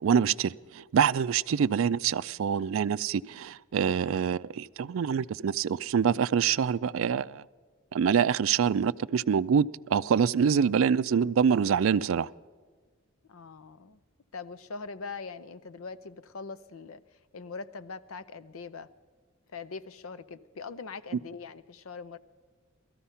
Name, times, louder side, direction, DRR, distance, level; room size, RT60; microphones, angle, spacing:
voice 1, 0.0-7.4 7.9-12.3, right 7 dB, 70° right, 0.4 m, -25 dB
voice 2, 13.3-14.0 14.3-18.9 19.5-22.2, left 4 dB, 85° left, 0.7 m, -42 dB
18.0 x 14.0 x 5.6 m
head